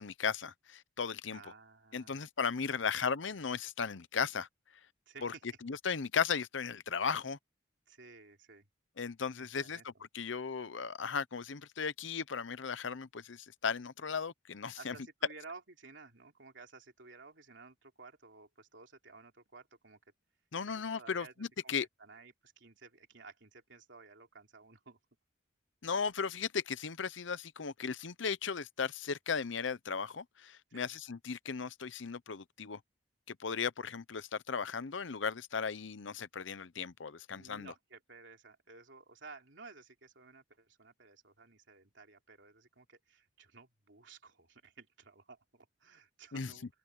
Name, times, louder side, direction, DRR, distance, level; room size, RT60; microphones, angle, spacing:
voice 1, 0.0-1.4 1.9-4.5 5.2-5.3 5.6-7.4 9.0-14.9 20.5-21.9 25.8-32.8 33.3-37.7 46.3-46.5, left 6 dB, 75° left, 0.8 m, -36 dB
voice 2, 1.3-2.3 2.7-2.9 3.2-3.4 5.1-5.4 7.9-8.7 9.4-10.0 14.8-20.0 20.6-21.3 21.6-21.7 22.0-25.0 30.7-30.9 37.3-46.7, right 4 dB, 70° right, 3.5 m, -55 dB
open air
head